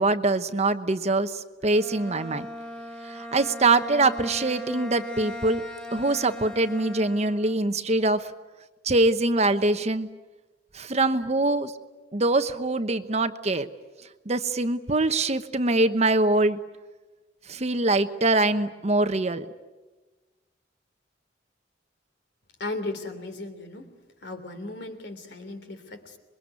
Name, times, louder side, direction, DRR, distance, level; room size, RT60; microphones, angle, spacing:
voice 1, 0.0-2.5 3.0-5.6 5.9-8.3 8.8-10.1 10.7-11.7 12.1-13.7 14.3-16.6 17.5-19.5, right 2 dB, 35° right, 10 dB, 1.0 m, -23 dB
Bowed string instrument, 1.6-7.7, left 1 dB, 5° left, 1.8 m, -39 dB
voice 2, 22.6-23.9 24.2-26.2, left 2 dB, 65° left, 8 dB, 3.2 m, -36 dB
26.5 x 22.0 x 9.6 m, 1.2 s
head